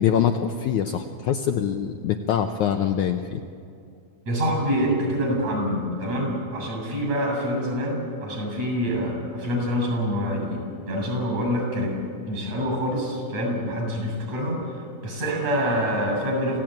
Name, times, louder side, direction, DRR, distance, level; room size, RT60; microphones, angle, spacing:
voice 1, 0.0-3.4, left 8 dB, 75° left, 5 dB, 1.9 m, -24 dB
voice 2, 4.3-12.0 12.3-16.6, equal, 50° right, 2 dB, 8.6 m, -26 dB
27.5 x 16.5 x 9.1 m, 2.4 s
omnidirectional pair, 4.2 m